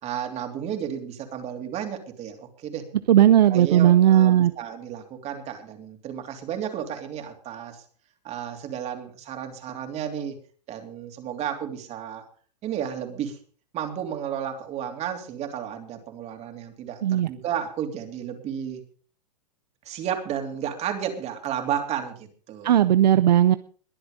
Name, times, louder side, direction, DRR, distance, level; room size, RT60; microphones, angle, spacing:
voice 1, 0.0-2.8 3.5-7.8 8.2-10.4 10.7-12.2 12.6-13.4 13.7-18.8 19.8-22.8, right 9 dB, 30° right, 5 dB, 3.2 m, -32 dB
voice 2, 3.1-4.5 17.0-17.3 22.6-23.6, right 11 dB, 80° right, 14 dB, 0.7 m, -17 dB
22.0 x 7.9 x 5.2 m, 0.43 s
hypercardioid pair, 130°, 21 cm